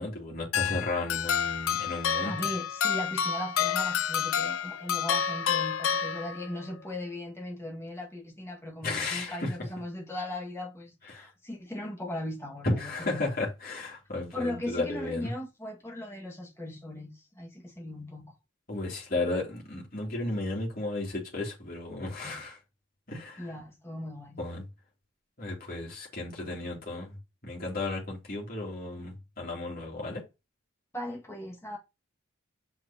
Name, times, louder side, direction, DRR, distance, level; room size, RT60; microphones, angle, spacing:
voice 1, 0.0-2.3 8.8-9.5 11.1-11.3 12.6-15.3 18.7-22.6 23.1-23.5 24.4-24.6 25.4-27.2 27.4-30.2, left 2 dB, 45° left, 3.1 m, -34 dB
sound 1, 0.5-6.7, left 8 dB, 85° left, 0.5 m, -29 dB
voice 2, 2.2-13.3 14.3-18.3 22.2-22.4 23.4-24.4 30.9-31.8, left 1 dB, 15° left, 1.8 m, -38 dB
8.0 x 5.8 x 2.9 m
head